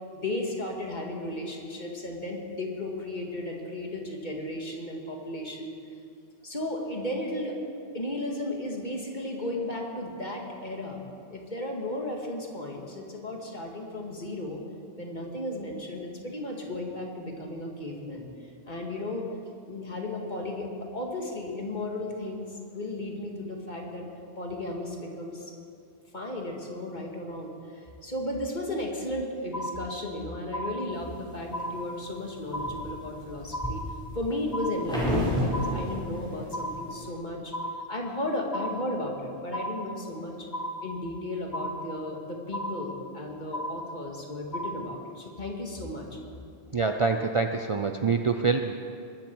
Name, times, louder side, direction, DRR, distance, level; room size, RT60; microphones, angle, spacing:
voice 1, 0.1-5.7 6.4-7.5 7.9-11.0 11.3-14.6 15.0-18.3 18.7-19.2 19.7-24.0 24.4-25.5 26.1-33.8 34.1-37.5 37.9-40.5 40.8-46.1, left 1 dB, 45° left, 0 dB, 2.1 m, -34 dB
sound 1, 29.5-30.2 30.5-31.2 31.5-32.2 32.5-33.2 33.5-34.2 34.5-35.2 35.5-36.2 36.5-37.2 37.5-38.2 38.5-39.2 39.5-40.2 40.5-41.2 41.5-42.2 42.5-43.2 43.5-44.2 44.5-44.8, equal, 20° left, 0.8 m, -35 dB
sound 2, 31.0-31.8 32.3-37.1, left 1 dB, 5° left, 5.1 m, -31 dB
voice 2, 46.7-48.7, right 4 dB, 35° right, 5 dB, 0.5 m, -25 dB
22.0 x 13.0 x 4.6 m, 2.4 s
omnidirectional pair, 1.1 m